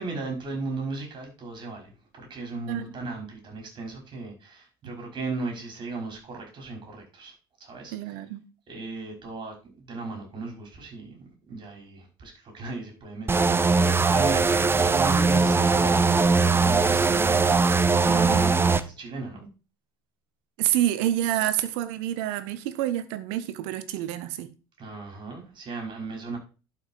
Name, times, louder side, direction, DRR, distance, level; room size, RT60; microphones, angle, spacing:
voice 1, 0.0-7.3 7.6-8.2 8.7-16.1 16.4-17.7 18.0-19.5 24.8-26.4, right 3 dB, 40° right, 5.6 m, -36 dB
voice 2, 7.9-8.4 20.6-24.5, right 13 dB, 65° right, 1.2 m, -28 dB
sound 1, 13.3-18.8, right 4 dB, 20° right, 0.8 m, -20 dB
11.5 x 5.8 x 4.7 m
figure-of-eight pair, 65°, 12 cm